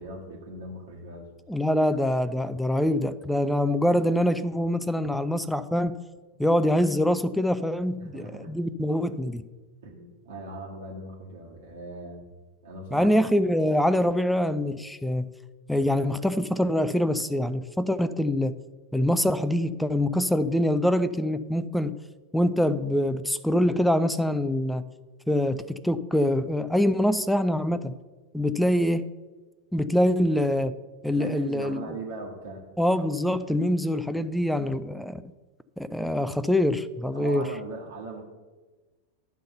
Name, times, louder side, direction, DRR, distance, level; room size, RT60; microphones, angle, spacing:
voice 1, 0.0-1.3 8.0-8.5 9.8-12.3 12.6-13.2 31.1-32.6 37.1-38.2, right 2 dB, 60° right, 1.5 m, -39 dB
voice 2, 1.5-6.0 6.4-9.4 12.9-15.3 15.7-18.5 18.9-21.9 22.3-24.8 25.3-27.9 28.3-29.1 29.7-30.7 31.0-32.0 32.8-35.2 35.8-37.5, left 1 dB, ahead, 0.4 m, -24 dB
11.5 x 3.9 x 6.7 m
figure-of-eight pair, 90°, 0 cm